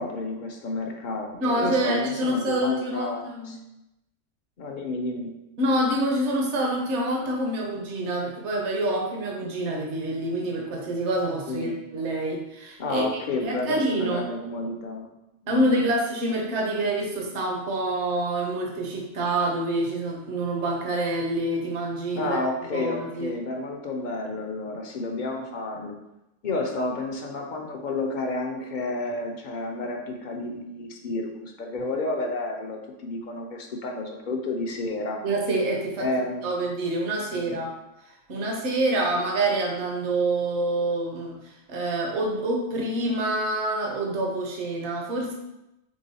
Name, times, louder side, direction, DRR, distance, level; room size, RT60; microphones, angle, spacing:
voice 1, 0.0-3.6 4.6-5.3 11.5-11.8 12.8-15.1 15.4-15.9 22.1-25.9 26.4-35.2 36.0-36.5 37.3-37.6, left 2 dB, 50° left, 2 dB, 0.6 m, -31 dB
voice 2, 1.4-3.6 5.6-13.0 13.4-14.2 15.5-22.4 22.7-23.3 35.2-36.1 36.4-37.7 38.3-45.3, right 1 dB, 65° right, 0 dB, 1.1 m, -27 dB
3.8 x 3.4 x 4.0 m, 0.92 s
omnidirectional pair, 1.3 m